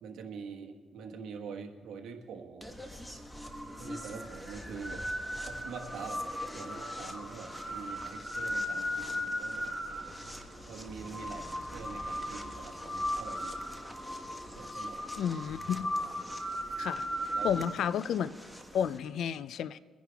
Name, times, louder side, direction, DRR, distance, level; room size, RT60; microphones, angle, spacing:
voice 1, 0.0-2.7 3.8-5.0 5.5-6.2 6.5-9.7 10.7-13.6 14.5-15.1 17.3-17.5 18.8-18.9, right 5 dB, 80° right, 3 dB, 1.4 m, -45 dB
sound 1, 2.6-19.0, equal, 10° left, 1.4 m, -38 dB
sound 2, 9.1-14.5, right 2 dB, 15° right, 1.0 m, -55 dB
voice 2, 15.2-15.9 16.8-17.0 17.4-18.3 18.7-19.8, left 8 dB, 70° left, 16 dB, 0.5 m, -31 dB
24.0 x 10.5 x 3.5 m, 1.5 s
cardioid pair, 90°, 0 cm